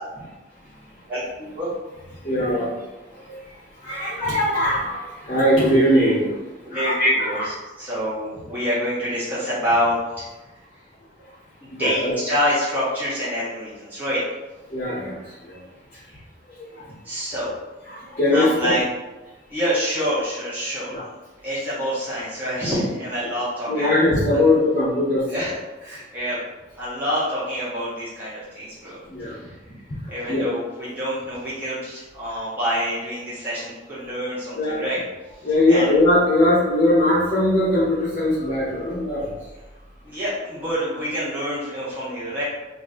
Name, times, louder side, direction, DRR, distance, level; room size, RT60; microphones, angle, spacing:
voice 1, 1.1-1.7 6.6-10.2 11.6-14.2 15.9-16.2 16.8-17.5 18.3-18.8 19.5-21.0 21.4-24.0 24.3-24.4 25.3-26.4 26.8-29.8 30.1-35.0 35.7-35.9 40.0-42.4, equal, 10° right, -12 dB, 1.2 m, -27 dB
voice 2, 2.2-2.7 3.2-3.4 3.8-6.4 6.7-7.4 11.7-12.1 14.7-15.6 15.9-16.0 16.7-16.9 17.9-18.7 20.9-21.0 23.7-25.2 29.1-29.3 30.3-30.5 34.6-34.8 35.4-39.3, left 1 dB, 40° left, -11 dB, 0.9 m, -20 dB
3.0 x 2.7 x 3.6 m, 1.2 s
head